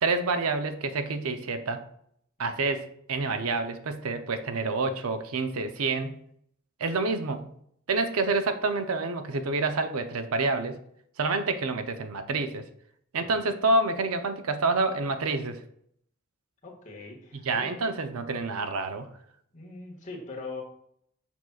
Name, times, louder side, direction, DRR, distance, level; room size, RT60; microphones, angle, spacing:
voice 1, 0.0-1.8 2.4-6.2 6.8-7.5 7.9-10.8 11.2-12.7 13.1-15.6 17.4-19.1, right 3 dB, 90° right, 8 dB, 0.7 m, -28 dB
voice 2, 16.6-17.7 19.5-20.6, left 3 dB, 35° left, -1 dB, 1.6 m, -41 dB
7.0 x 6.0 x 2.4 m, 0.68 s
head